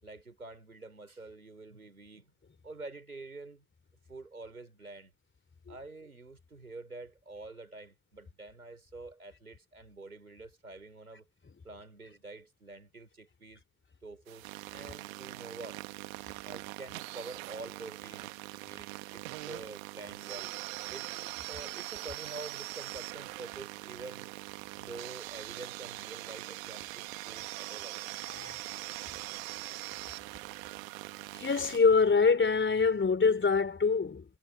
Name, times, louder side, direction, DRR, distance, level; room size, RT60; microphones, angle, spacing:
voice 1, 0.0-2.3 2.6-3.6 4.1-5.1 5.7-11.2 11.6-13.6 14.0-15.8 16.4-20.5 20.9-24.4 24.7-28.0, right 3 dB, 90° right, 6.6 m, -47 dB
sound 1, 14.3-31.8, right 23 dB, 70° right, 2.1 m, -42 dB
voice 2, 31.3-34.3, left 5 dB, 25° left, 4.2 m, -25 dB
figure-of-eight pair, 45°, 42 cm